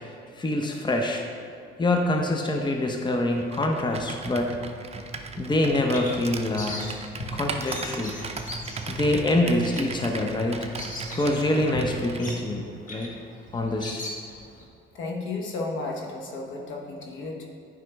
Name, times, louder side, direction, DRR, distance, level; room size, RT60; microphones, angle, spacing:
voice 1, 0.4-1.2 1.8-4.5 5.4-6.9 7.3-8.2 8.9-10.7 11.1-13.1 13.5-14.0, left 1 dB, 20° left, 2 dB, 0.8 m, -25 dB
Computer keyboard, 3.4-12.4, right 4 dB, 30° right, 0.6 m, -37 dB
Bird vocalization bird call bird song, 5.5-14.7, left 1 dB, 40° left, 1.3 m, -39 dB
voice 2, 14.9-17.5, left 3 dB, 75° left, 0 dB, 1.2 m, -33 dB
9.1 x 5.2 x 3.5 m, 2.5 s
cardioid pair, 90°, 20 cm